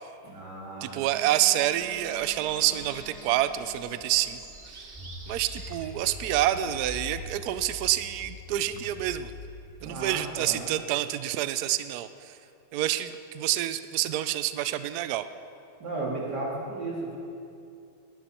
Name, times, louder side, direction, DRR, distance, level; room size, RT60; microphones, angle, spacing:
voice 1, 0.2-1.0 9.8-10.7 15.8-17.2, right 2 dB, 50° right, -3 dB, 3.1 m, -35 dB
voice 2, 0.8-4.4 4.7-4.9 5.3-9.3 9.8-12.4 12.7-15.3, right 13 dB, 85° right, 12 dB, 0.8 m, -28 dB
Wind instrument woodwind instrument, 1.1-4.8, left 4 dB, 75° left, 2.0 m, -49 dB
sound 1, 1.7-7.3, right 3 dB, 30° right, 0.9 m, -48 dB
sound 2, 4.9-10.8, left 2 dB, 10° right, 2.8 m, -43 dB
20.0 x 12.5 x 4.3 m, 2.6 s
omnidirectional pair, 2.3 m